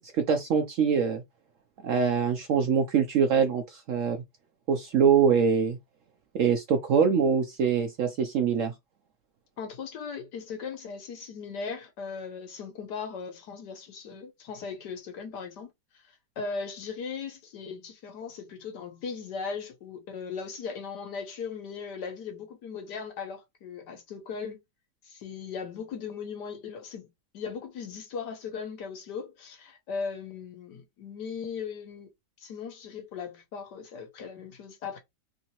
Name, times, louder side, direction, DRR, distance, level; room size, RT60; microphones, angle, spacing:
voice 1, 0.1-1.2 1.8-4.2 4.7-5.8 6.3-8.7, right 6 dB, 70° right, 0.8 m, -24 dB
voice 2, 9.6-15.7 16.4-24.6 25.0-32.1 32.4-35.0, left 5 dB, 75° left, 1.6 m, -38 dB
3.5 x 2.8 x 2.9 m
omnidirectional pair, 1.8 m